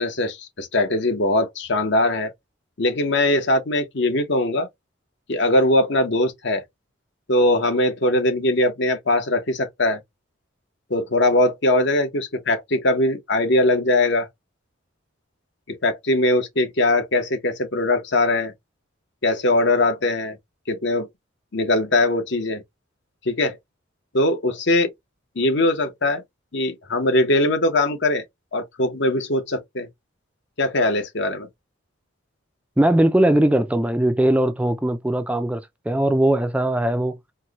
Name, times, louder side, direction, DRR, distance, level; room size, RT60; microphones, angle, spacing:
voice 1, 0.0-2.3 2.8-4.7 5.3-6.6 7.3-10.0 10.9-14.3 15.7-18.5 19.2-20.4 20.7-21.1 21.5-22.6 23.2-23.6 24.1-24.9 25.3-26.2 26.5-28.2 28.5-29.9 30.6-31.5, left 1 dB, 60° left, 1.0 m, -21 dB
voice 2, 32.8-35.6 35.9-37.2, right 1 dB, 5° right, 0.4 m, -19 dB
4.5 x 2.2 x 2.9 m
head